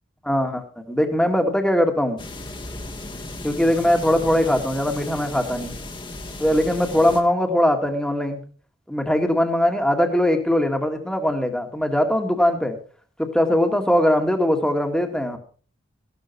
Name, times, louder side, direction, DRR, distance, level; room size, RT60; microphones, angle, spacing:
voice 1, 0.2-2.2 3.4-5.7 6.4-8.4 8.9-12.8 13.2-15.4, left 1 dB, 5° left, 5 dB, 1.9 m, -21 dB
sound 1, 2.2-7.2, left 2 dB, 25° left, 1.7 m, -35 dB
15.0 x 12.5 x 4.5 m, 0.41 s
head